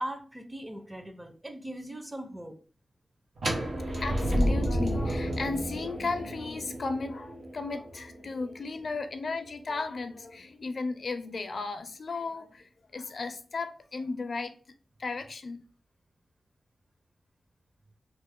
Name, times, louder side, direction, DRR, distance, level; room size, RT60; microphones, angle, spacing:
voice 1, 0.0-2.6, right 1 dB, 15° right, 0.6 m, -39 dB
sound 1, 3.4-9.2, equal, 75° right, 1.0 m, -31 dB
voice 2, 4.0-14.5 15.0-15.7, left 3 dB, 60° left, 0.4 m, -35 dB
3.1 x 2.0 x 3.6 m
wide cardioid pair, 85°, 0 cm